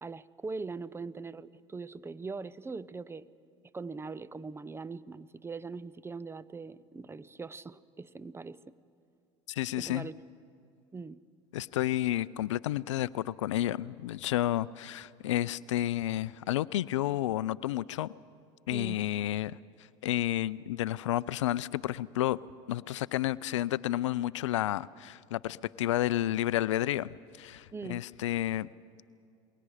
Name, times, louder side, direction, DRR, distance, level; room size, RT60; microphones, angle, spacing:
voice 1, 0.0-3.3 3.7-8.7 9.7-10.2 10.9-11.2 18.7-19.0 27.7-28.0, right 4 dB, 15° right, 16 dB, 0.6 m, -41 dB
voice 2, 9.5-10.1 11.5-18.1 18.7-19.6 20.0-22.4 22.7-28.7, left 14 dB, 85° left, 20 dB, 0.4 m, -31 dB
28.5 x 21.5 x 5.0 m, 2.4 s
hypercardioid pair, 80°, 15 cm